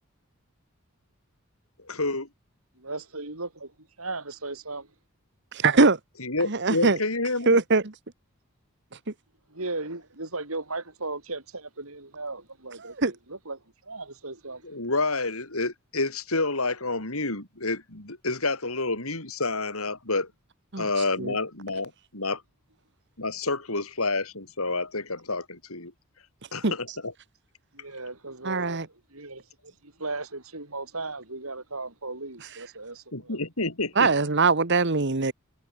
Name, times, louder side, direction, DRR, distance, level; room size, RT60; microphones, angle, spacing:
voice 1, 1.9-2.3 6.2-7.6 14.6-20.3 20.8-22.4 23.2-25.9 26.5-27.1 33.1-34.1, left 3 dB, 70° left, 5.5 m, -29 dB
voice 2, 2.8-3.7 4.0-4.9 9.5-13.6 13.9-14.7 27.7-29.4 29.8-33.4, right 3 dB, 75° right, 6.9 m, -36 dB
voice 3, 5.5-6.0 6.5-7.0 7.5-7.8 12.8-13.1 20.7-20.9 21.2-21.3 26.6-26.7 28.4-28.9 34.0-35.3, right 3 dB, 55° right, 1.4 m, -21 dB
head